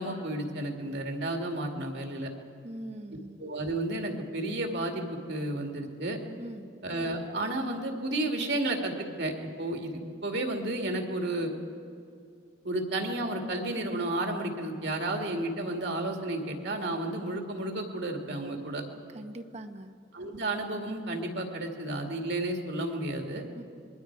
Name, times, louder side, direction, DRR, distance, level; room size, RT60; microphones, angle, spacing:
voice 1, 0.0-2.3 3.4-6.2 6.8-11.5 12.6-18.8 20.1-23.4, right 1 dB, 60° right, 3 dB, 2.4 m, -32 dB
voice 2, 2.6-3.4 6.4-6.7 19.1-19.9 23.6-23.7, right 1 dB, 35° right, 7 dB, 1.0 m, -42 dB
26.5 x 22.0 x 4.8 m, 2.4 s
head